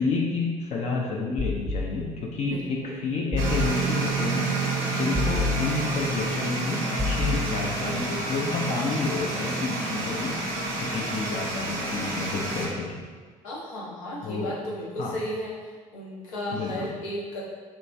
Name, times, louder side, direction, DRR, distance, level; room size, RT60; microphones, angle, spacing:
voice 1, 0.0-4.5 4.9-10.4 10.8-13.0 14.2-14.5 15.0-15.2 16.5-16.9, left 3 dB, 40° left, -1 dB, 0.4 m, -30 dB
sound 1, 1.4-2.4 3.3-4.2 5.1-6.2 7.0-8.1, left 4 dB, ahead, 0.7 m, -30 dB
voice 2, 2.4-3.0 13.4-17.4, left 1 dB, 85° left, -5 dB, 0.7 m, -34 dB
sound 2, 3.4-12.7, right 3 dB, 65° right, 0.6 m, -29 dB
2.9 x 2.2 x 2.6 m, 1.5 s
hypercardioid pair, 55°, 17 cm